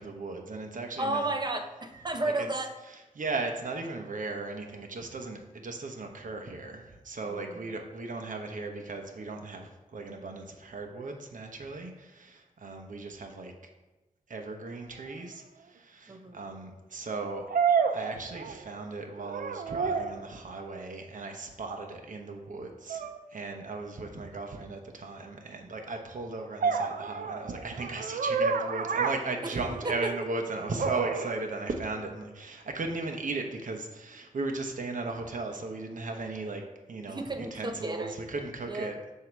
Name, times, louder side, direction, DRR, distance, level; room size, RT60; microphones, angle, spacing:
voice 1, 0.0-1.3 2.2-2.5 2.9-13.5 14.3-17.5 17.9-36.6 36.9-38.9, right 3 dB, 65° right, 3 dB, 0.8 m, -37 dB
voice 2, 1.0-2.8 7.3-7.7 16.1-16.4 29.8-30.1 37.1-38.4 38.7-38.9, right 2 dB, 30° right, 6 dB, 0.7 m, -33 dB
sound 1, 15.1-15.2 17.5-18.8 19.2-20.2 22.9-23.2 26.6-30.1 30.8-31.3, right 5 dB, 85° right, 0.5 m, -29 dB
7.6 x 2.8 x 6.0 m, 1.1 s
wide cardioid pair, 80°, 14 cm